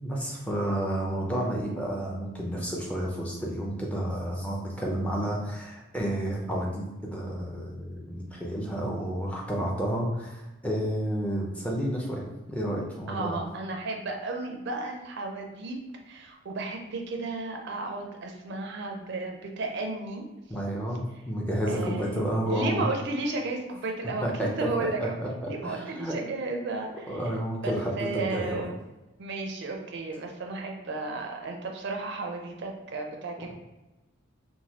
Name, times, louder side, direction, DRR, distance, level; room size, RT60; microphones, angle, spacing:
voice 1, 0.0-12.2 12.5-13.3 20.5-22.8 24.2-24.7 25.0-26.1 27.1-28.6, right 1 dB, 5° left, -3 dB, 0.5 m, -30 dB
voice 2, 13.1-15.8 16.1-20.2 21.7-25.1 25.4-27.1 27.6-28.7 29.2-33.5, right 3 dB, 55° right, 2 dB, 0.4 m, -33 dB
3.1 x 2.2 x 2.8 m, 1.1 s
head